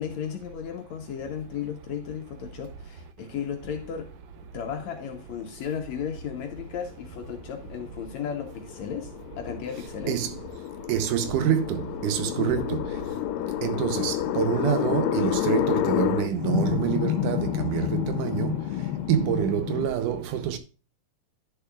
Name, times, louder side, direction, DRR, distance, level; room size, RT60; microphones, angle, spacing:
voice 1, 0.0-4.1 4.5-10.2 12.2-12.8, left 8 dB, 70° left, 1.9 m, -35 dB
sound 1, 7.4-19.9, left 13 dB, 90° left, 2.3 m, -29 dB
voice 2, 10.9-12.8 13.6-18.6 19.1-20.6, right 10 dB, 75° right, 2.2 m, -26 dB
11.0 x 6.7 x 2.3 m
omnidirectional pair, 3.9 m